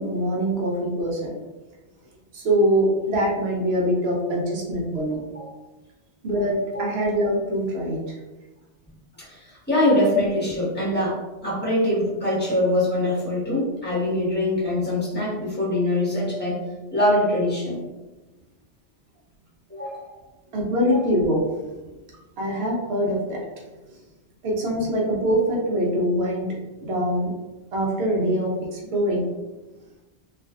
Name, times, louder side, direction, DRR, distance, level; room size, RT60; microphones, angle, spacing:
voice 1, 0.0-1.3 2.3-5.2 6.2-8.2 20.5-21.4 22.4-23.4 24.4-26.5 26.8-27.3 27.7-29.2, equal, 70° right, -3 dB, 0.9 m, -23 dB
voice 2, 9.2-16.6 16.9-17.8 19.7-20.0 20.8-21.0, left 1 dB, 10° left, -8 dB, 1.0 m, -23 dB
2.5 x 2.4 x 2.3 m, 1.1 s
omnidirectional pair, 1.1 m